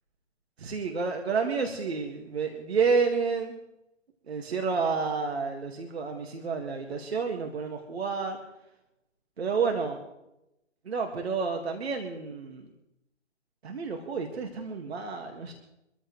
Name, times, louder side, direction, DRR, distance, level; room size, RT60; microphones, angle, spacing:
voice 1, 0.6-3.6 4.3-8.4 9.4-10.0 10.9-12.7 13.6-15.5, right 5 dB, 55° right, 3 dB, 2.0 m, -30 dB
24.5 x 14.0 x 3.2 m, 0.87 s
figure-of-eight pair, 140°, 37 cm